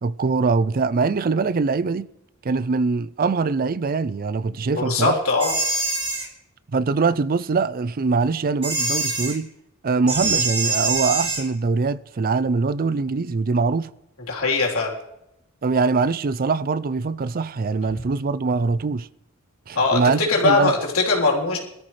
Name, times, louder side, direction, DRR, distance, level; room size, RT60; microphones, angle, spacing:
voice 1, 0.0-2.1 2.4-5.2 6.7-9.5 9.8-13.9 15.6-19.1 19.7-20.7, right 4 dB, 45° right, 0.4 m, -23 dB
voice 2, 4.7-5.5 14.3-14.9 19.7-21.6, left 3 dB, 90° left, 3.6 m, -21 dB
sound 1, 5.4-6.3 8.6-9.3 10.1-11.4, right 3 dB, 25° right, 3.0 m, -24 dB
22.0 x 13.0 x 3.2 m
head